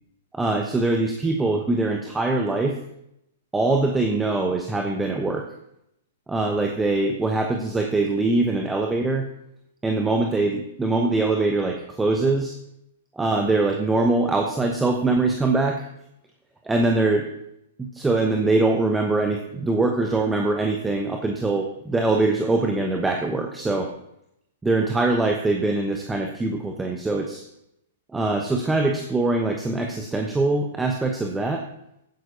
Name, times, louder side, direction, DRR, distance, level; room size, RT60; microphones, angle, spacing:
voice 1, 0.3-2.8 3.5-5.5 6.3-9.3 9.8-12.6 13.2-15.9 16.6-17.3 17.8-23.9 24.6-27.4 28.1-31.6, right 2 dB, 10° right, 3 dB, 1.0 m, -23 dB
15.5 x 9.2 x 2.8 m, 0.80 s
figure-of-eight pair, 105°, 0 cm